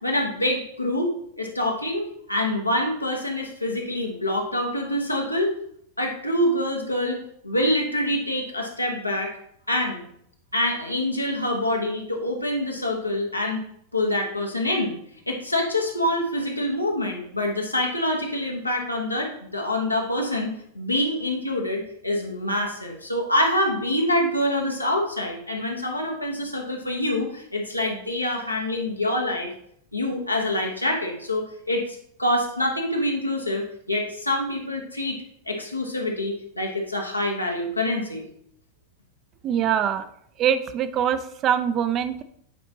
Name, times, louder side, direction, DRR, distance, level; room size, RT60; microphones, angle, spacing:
voice 1, 0.0-5.5 6.0-9.4 9.7-10.0 10.5-13.6 13.9-14.9 15.3-29.5 29.9-38.2, left 1 dB, 85° left, 0 dB, 1.0 m, -26 dB
voice 2, 39.4-40.1 40.4-42.2, right 9 dB, 30° right, 10 dB, 0.4 m, -23 dB
8.3 x 4.2 x 2.8 m, 0.69 s
figure-of-eight pair, 90°, 0 cm